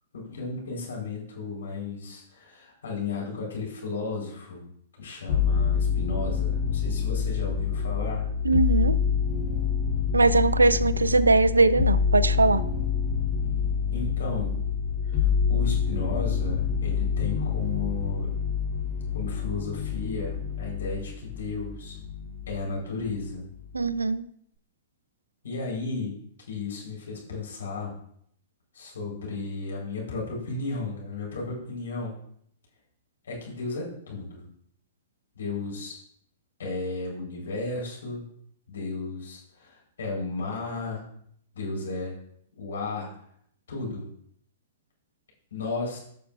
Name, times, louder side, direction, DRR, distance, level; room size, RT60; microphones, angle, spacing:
voice 1, 0.1-4.6 5.0-8.2 13.9-14.6 15.1-18.3 19.1-22.0 22.5-23.5 25.4-26.1 26.5-27.9 28.7-32.2 33.2-34.4 35.4-36.0 36.6-38.2 38.7-41.0 41.5-42.1 42.6-43.1 43.7-44.1 45.5-46.0, left 3 dB, 70° left, -2 dB, 3.9 m, -34 dB
sound 1, 5.3-22.7 23.0-23.8, left 7 dB, 45° left, 3.2 m, -27 dB
voice 2, 8.4-9.0 10.1-12.6 23.7-24.3, right 3 dB, 85° right, 17 dB, 0.4 m, -21 dB
14.0 x 6.8 x 2.4 m, 0.66 s
figure-of-eight pair, 110°, 0 cm